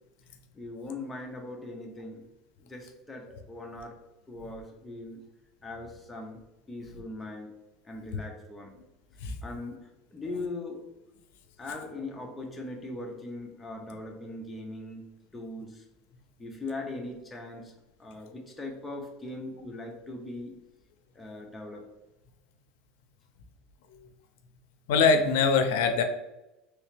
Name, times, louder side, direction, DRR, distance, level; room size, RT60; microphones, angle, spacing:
voice 1, 0.5-2.3 2.6-4.0 4.3-5.2 5.6-7.5 7.8-8.7 9.2-10.8 11.6-15.1 15.3-15.8 16.4-17.7 18.0-20.6 21.1-21.9, left 2 dB, 10° left, 0 dB, 0.5 m, -40 dB
voice 2, 24.9-26.0, left 5 dB, 85° left, 7 dB, 0.4 m, -22 dB
3.2 x 2.9 x 3.2 m, 0.97 s
cardioid pair, 180°, 0 cm